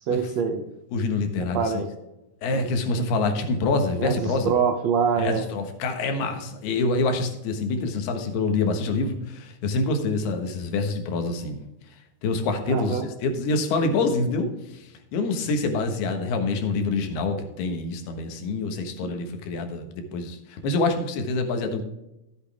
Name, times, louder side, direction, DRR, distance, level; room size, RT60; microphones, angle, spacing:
voice 1, 0.1-0.6 1.5-1.9 2.5-2.6 4.0-5.5 12.7-13.1 19.0-19.1, right 6 dB, 80° right, 5 dB, 1.5 m, -25 dB
voice 2, 0.9-1.7 2.4-4.5 5.2-11.6 12.2-21.8, left 3 dB, 85° left, 6 dB, 3.4 m, -26 dB
13.5 x 8.0 x 3.5 m, 0.90 s
omnidirectional pair, 4.4 m